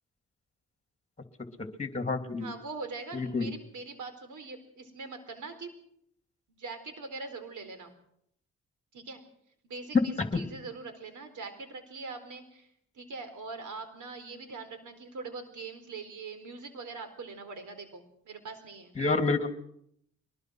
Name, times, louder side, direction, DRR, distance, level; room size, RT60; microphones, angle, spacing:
voice 1, 1.6-2.5 3.1-3.5 10.3-10.4 19.0-19.5, left 3 dB, 20° left, 7 dB, 3.0 m, -29 dB
voice 2, 2.4-5.7 6.5-7.9 8.9-9.2 9.6-12.7 12.9-19.0, right 4 dB, 75° right, 9 dB, 4.1 m, -42 dB
22.5 x 20.5 x 6.4 m, 0.73 s
cardioid pair, 65°, 30 cm